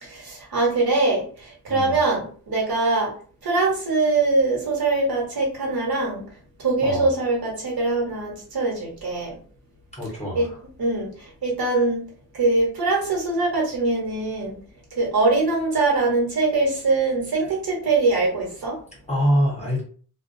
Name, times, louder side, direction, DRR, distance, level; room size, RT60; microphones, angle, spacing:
voice 1, 0.0-3.1 3.4-6.3 6.6-9.3 10.3-10.5 10.8-12.0 12.3-14.6 15.0-18.8, right 3 dB, 65° right, -2 dB, 1.1 m, -22 dB
voice 2, 9.9-10.6 19.1-19.8, equal, 15° left, -4 dB, 0.9 m, -24 dB
2.3 x 2.2 x 2.6 m, 0.44 s
wide cardioid pair, 85°, 39 cm